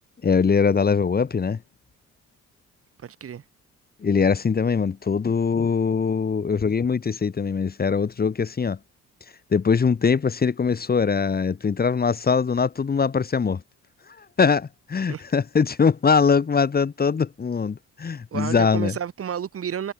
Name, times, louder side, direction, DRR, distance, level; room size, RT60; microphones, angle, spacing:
voice 1, 0.2-1.6 4.0-8.8 9.5-13.6 14.2-18.9, left 5 dB, 30° left, 1.3 m, -22 dB
voice 2, 3.0-3.4 15.1-15.2 18.3-19.9, right 8 dB, 50° right, 1.5 m, -31 dB
cardioid pair, 90°, 30 cm